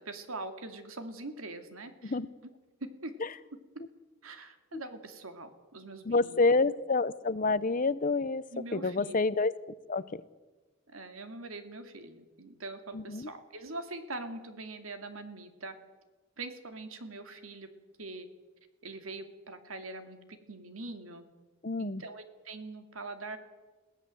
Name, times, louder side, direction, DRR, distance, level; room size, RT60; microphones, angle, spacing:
voice 1, 0.0-2.2 2.8-3.1 4.2-6.5 8.5-9.2 10.9-15.8 16.4-17.7 18.0-18.3 18.8-21.3 21.8-23.4, right 2 dB, 90° right, 8 dB, 2.4 m, -43 dB
voice 2, 6.1-9.5 9.9-10.2 12.9-13.3 21.6-22.0, left 3 dB, 40° left, 17 dB, 0.7 m, -28 dB
22.0 x 16.5 x 7.7 m, 1.2 s
head